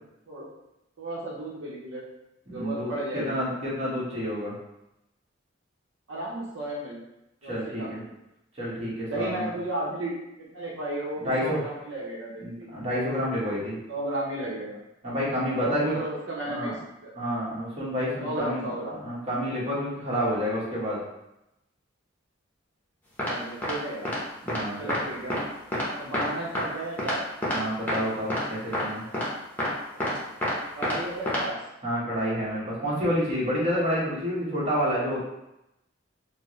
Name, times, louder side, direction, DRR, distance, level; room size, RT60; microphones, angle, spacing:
voice 1, 1.0-2.0 2.5-3.4 6.1-7.0 7.4-8.1 9.0-12.7 13.9-14.8 15.5-16.7 17.0-17.1 18.2-19.0 23.2-24.1 24.8-25.3 25.9-27.2 30.8-31.6, right 1 dB, 75° right, -4 dB, 0.7 m, -33 dB
voice 2, 2.5-4.5 7.5-8.0 8.6-9.5 11.2-11.6 12.4-13.8 15.0-16.0 16.5-16.7 17.2-18.7 19.0-21.0 24.4-25.0 27.5-29.0 31.8-35.2, equal, 35° right, -7 dB, 1.2 m, -29 dB
sound 1, 23.2-23.3 23.6-23.7 24.0-24.2 24.5-24.6 24.9-25.0 25.3-25.4 25.7-25.9 26.1-26.3 26.5-26.6 27.0-27.1 27.4-27.6 27.9-28.0 28.3-28.5 28.7-28.8 29.1-29.3 29.6-29.7 30.0-30.5 30.8-30.9 31.3-31.4, left 1 dB, 10° left, 0.8 m, -27 dB
4.4 x 2.0 x 3.0 m, 0.89 s
head